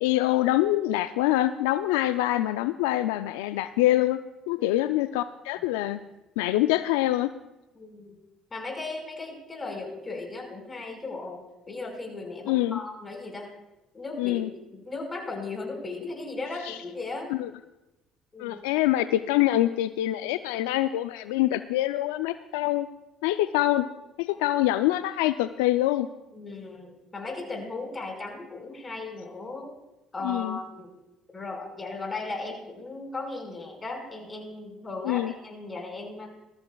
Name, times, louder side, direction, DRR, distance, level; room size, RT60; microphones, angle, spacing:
voice 1, 0.0-4.2 4.5-6.0 6.4-7.3 12.5-12.8 14.2-14.5 16.6-16.8 17.3-17.5 18.4-22.9 23.2-23.9 24.2-26.1 30.2-30.6 35.0-35.3, left 15 dB, 85° left, 11 dB, 0.3 m, -25 dB
voice 2, 7.8-8.1 8.5-11.4 11.7-13.5 13.9-14.4 14.7-17.3 18.3-18.6 26.3-29.7 30.1-30.9 31.3-36.3, left 3 dB, 30° left, 2 dB, 4.9 m, -36 dB
20.0 x 14.0 x 2.3 m, 0.97 s
hypercardioid pair, 65°, 0 cm